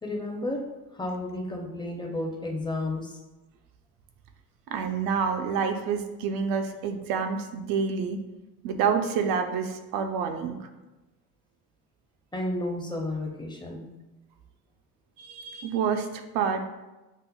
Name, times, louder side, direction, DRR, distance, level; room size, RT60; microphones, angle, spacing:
voice 1, 0.0-0.6 0.9-3.2 12.3-13.9, left 2 dB, 15° left, 1 dB, 0.5 m, -32 dB
voice 2, 4.7-8.2 8.6-10.6 15.2-16.6, right 6 dB, 85° right, 6 dB, 0.5 m, -28 dB
5.5 x 2.0 x 2.2 m, 1.1 s
cardioid pair, 95°, 34 cm